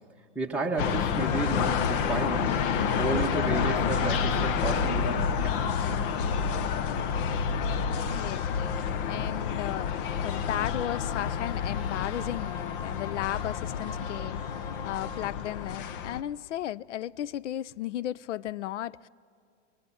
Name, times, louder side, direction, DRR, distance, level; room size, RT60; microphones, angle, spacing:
voice 1, 0.3-2.6 3.0-5.7, right 4 dB, 5° right, 1.6 m, -32 dB
sound 1, 0.8-16.2, left 7 dB, 45° left, 1.0 m, -29 dB
sound 2, 0.9-4.0, right 14 dB, 50° right, 0.9 m, -48 dB
voice 2, 8.1-8.5 9.1-9.9 10.2-19.1, left 13 dB, 75° left, 0.5 m, -35 dB
24.5 x 22.5 x 6.3 m
hypercardioid pair, 130°, 37 cm